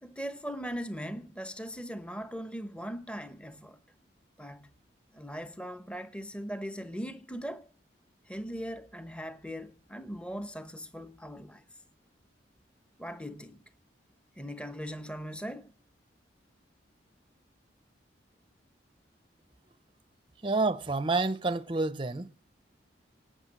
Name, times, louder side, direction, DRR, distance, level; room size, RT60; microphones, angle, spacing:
voice 1, 0.0-3.8 4.4-4.7 5.1-7.7 8.3-11.6 13.0-13.6 14.4-15.7, equal, 5° left, 0.9 m, -39 dB
voice 2, 20.4-22.3, right 3 dB, 25° right, 0.7 m, -28 dB
18.0 x 8.6 x 7.4 m
head